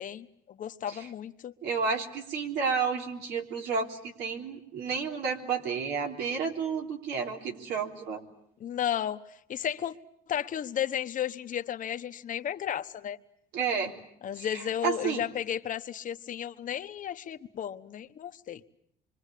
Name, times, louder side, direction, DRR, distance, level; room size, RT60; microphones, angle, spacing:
voice 1, 0.0-1.5 8.6-9.9 10.3-13.2 14.2-18.6, left 10 dB, 50° left, 1.1 m, -33 dB
voice 2, 1.6-8.2 13.5-13.9 14.4-15.2, right 5 dB, 85° right, 3.6 m, -31 dB
26.0 x 24.0 x 8.4 m
cardioid pair, 110°, 17 cm